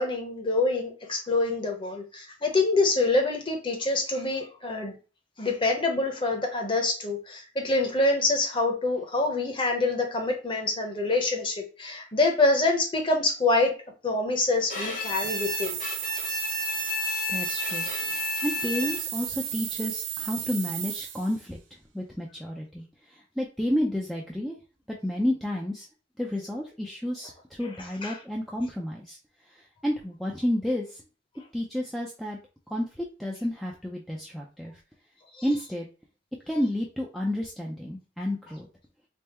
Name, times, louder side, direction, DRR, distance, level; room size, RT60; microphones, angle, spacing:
voice 1, 0.0-5.0 5.4-13.7 14.0-15.8 28.0-28.2 35.3-35.4, left 2 dB, 25° left, 2 dB, 0.8 m, -26 dB
Bowed string instrument, 14.7-19.3, left 4 dB, 45° left, 1.1 m, -32 dB
sound 1, 15.0-21.4, right 10 dB, 75° right, 0.6 m, -34 dB
voice 2, 17.3-21.6 21.9-24.6 24.9-25.9 26.2-29.2 29.5-31.0 31.5-32.4 32.7-34.7 35.4-35.9 36.5-38.7, left 1 dB, ahead, -2 dB, 0.4 m, -31 dB
3.5 x 2.0 x 4.2 m, 0.34 s
head